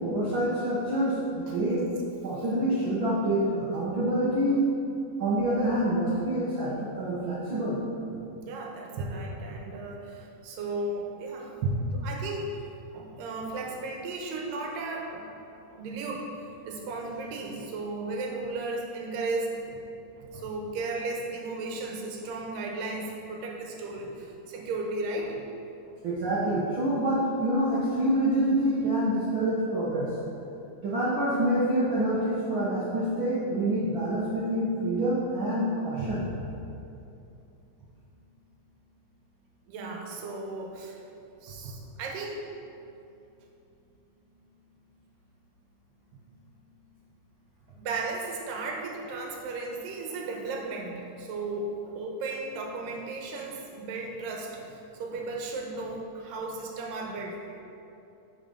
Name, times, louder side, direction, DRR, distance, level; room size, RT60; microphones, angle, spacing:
voice 1, 0.0-1.9 2.2-4.6 5.2-7.8 11.6-11.7 26.0-30.1 30.8-36.2, right 1 dB, 65° right, -8 dB, 1.2 m, -26 dB
voice 2, 8.4-11.5 11.9-12.6 12.9-16.3 16.6-19.8 20.2-25.4 39.7-41.0 41.4-42.4 47.8-57.6, right 3 dB, 80° right, 0 dB, 2.7 m, -35 dB
9.5 x 5.0 x 5.4 m, 2.7 s
omnidirectional pair, 4.0 m